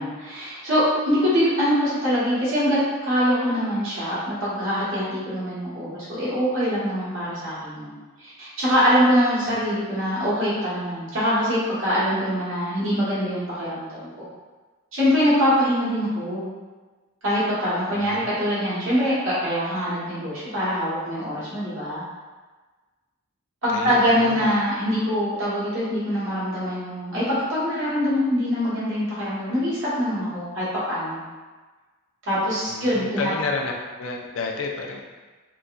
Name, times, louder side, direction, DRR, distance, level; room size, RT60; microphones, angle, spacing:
voice 1, 0.0-7.9 8.2-14.2 14.9-16.5 17.2-22.0 23.6-31.2 32.3-33.3, equal, 65° right, -10 dB, 1.4 m, -23 dB
voice 2, 17.9-18.3 23.7-24.5 32.7-33.7 34.0-35.0, left 4 dB, 65° left, 1 dB, 0.4 m, -31 dB
3.9 x 2.2 x 2.5 m, 1.3 s
head